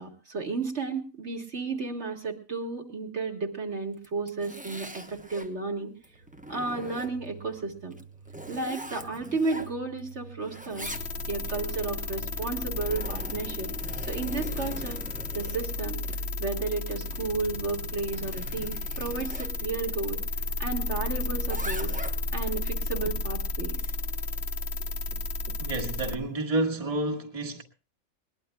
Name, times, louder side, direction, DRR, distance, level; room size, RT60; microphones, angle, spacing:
voice 1, 0.0-5.9 6.5-8.0 8.5-10.9 11.3-13.7 14.1-15.0 15.3-16.0 16.4-20.2 20.6-21.9 22.3-23.9, right 3 dB, 55° right, 2.0 m, -33 dB
Zipper (clothing), 3.9-5.5 6.0-7.4 7.9-10.1 10.4-11.5 12.4-19.5 21.2-22.4, right 1 dB, 5° right, 0.8 m, -43 dB
sound 1, 6.0-22.0, right 3 dB, 90° right, 3.9 m, -50 dB
sound 2, 10.8-26.2, left 2 dB, 55° left, 1.0 m, -33 dB
voice 2, 25.6-27.6, right 2 dB, 25° right, 1.6 m, -29 dB
21.5 x 19.5 x 2.3 m
omnidirectional pair, 1.4 m